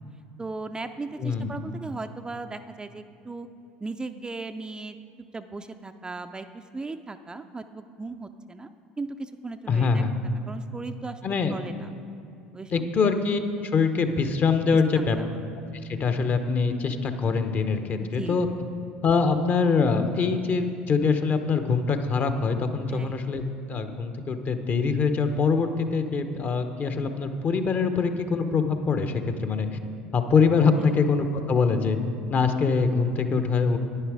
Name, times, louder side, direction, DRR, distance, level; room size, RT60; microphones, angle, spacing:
voice 1, 0.4-3.5 3.8-5.0 5.3-8.7 9.0-10.0 10.5-11.9 12.5-12.9 14.9-15.4 18.0-18.4 22.9-23.2 30.8-31.0, right 3 dB, 15° right, 8 dB, 0.4 m, -37 dB
voice 2, 1.2-1.6 9.7-10.1 11.2-11.6 12.7-15.2 16.0-18.5 19.0-23.4 23.7-29.8 30.1-32.0 32.3-33.8, left 5 dB, 40° left, 8 dB, 0.9 m, -24 dB
10.0 x 9.7 x 4.8 m, 2.6 s
hypercardioid pair, 75°, 5 cm